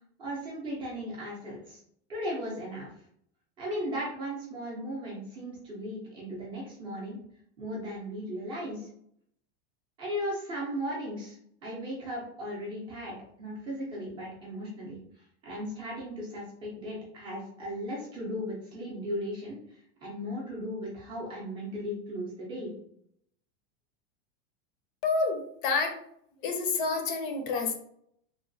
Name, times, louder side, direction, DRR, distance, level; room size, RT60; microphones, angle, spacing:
voice 1, 0.2-1.8 2.1-2.9 3.6-7.2 7.6-8.9 10.0-22.7, equal, 15° right, -5 dB, 0.4 m, -37 dB
voice 2, 25.0-26.0 26.4-27.7, left 4 dB, 55° left, 5 dB, 0.6 m, -28 dB
3.0 x 2.1 x 2.6 m, 0.67 s
supercardioid pair, 175°, 32 cm